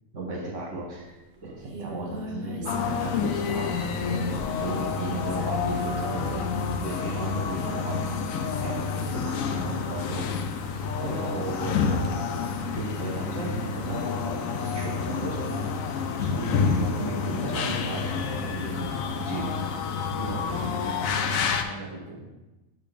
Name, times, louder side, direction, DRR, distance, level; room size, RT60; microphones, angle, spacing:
voice 1, 0.1-6.5 6.8-8.2 8.6-12.3 12.6-19.5, right 2 dB, 65° right, -1 dB, 1.4 m, -35 dB
Singing, 1.0-1.1 1.3-9.0, equal, 40° right, 0.8 m, -41 dB
sound 1, 2.7-21.6, left 5 dB, 75° left, 1.0 m, -29 dB
voice 2, 20.2-22.2, right 1 dB, 20° right, -2 dB, 1.4 m, -38 dB
8.3 x 4.8 x 3.4 m, 1.0 s
omnidirectional pair, 1.4 m